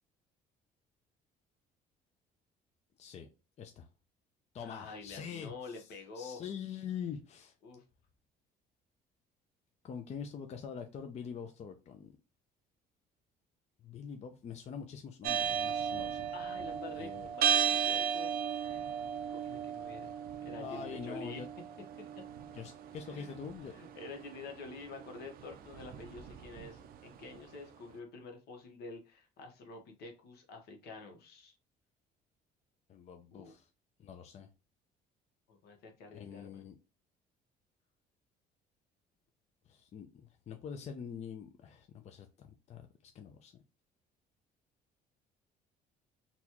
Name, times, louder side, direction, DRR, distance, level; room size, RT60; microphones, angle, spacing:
voice 1, 3.0-3.3 3.6-3.9 4.5-5.5 6.2-7.5 9.8-12.1 13.8-16.3 17.0-17.3 20.6-21.5 22.5-23.7 32.9-33.7 34.0-34.5 36.1-36.8 39.7-43.6, left 7 dB, 40° left, 0.5 m, -44 dB
voice 2, 4.6-6.4 7.6-7.8 16.3-18.9 19.1-20.1 20.4-21.4 23.1-23.4 23.7-31.5 33.3-33.5 35.5-36.7, left 4 dB, 75° left, 1.0 m, -48 dB
sound 1, 15.2-27.4, right 8 dB, 60° right, 0.4 m, -36 dB
4.1 x 2.3 x 2.9 m
cardioid pair, 110°, 17 cm